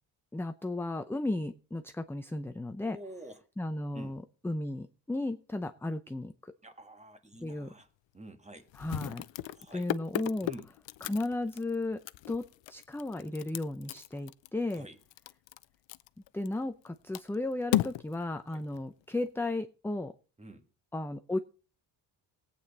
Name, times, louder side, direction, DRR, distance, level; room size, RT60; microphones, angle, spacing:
voice 1, 0.3-3.0 3.6-6.5 7.4-7.7 8.8-9.2 9.7-10.5 11.0-12.0 12.3-14.9 16.3-20.1 20.9-21.4, left 2 dB, 5° left, 8 dB, 0.6 m, -34 dB
voice 2, 2.9-3.4 3.9-4.2 6.6-7.9 8.1-8.7 9.5-9.9 10.4-10.7 14.7-15.0 18.5-18.6 20.4-20.7, right 1 dB, 15° right, 8 dB, 1.6 m, -48 dB
sound 1, 7.3-7.5 7.8-7.9 8.7-16.9 17.1-19.3, left 15 dB, 85° left, 0.7 m, -36 dB
18.5 x 8.7 x 4.1 m, 0.36 s
cardioid pair, 125°, 43 cm